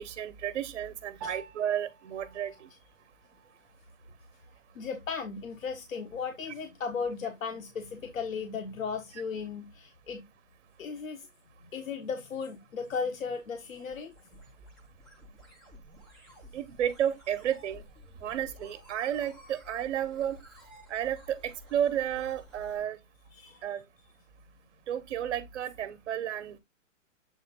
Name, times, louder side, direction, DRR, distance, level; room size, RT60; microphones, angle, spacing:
voice 1, 0.0-2.7 16.5-17.8 18.2-20.4 20.9-23.0 23.6-23.8 24.9-26.6, right 10 dB, 60° right, 1.3 m, -32 dB
Piano, 1.2-10.8, right 5 dB, 20° right, 0.8 m, -52 dB
voice 2, 4.7-10.2 10.8-11.3 11.7-14.1 23.3-23.6, left 5 dB, 90° left, 1.4 m, -36 dB
sound 1, 13.2-22.8, equal, ahead, 0.4 m, -54 dB
8.1 x 3.5 x 3.7 m
hypercardioid pair, 155°, 39 cm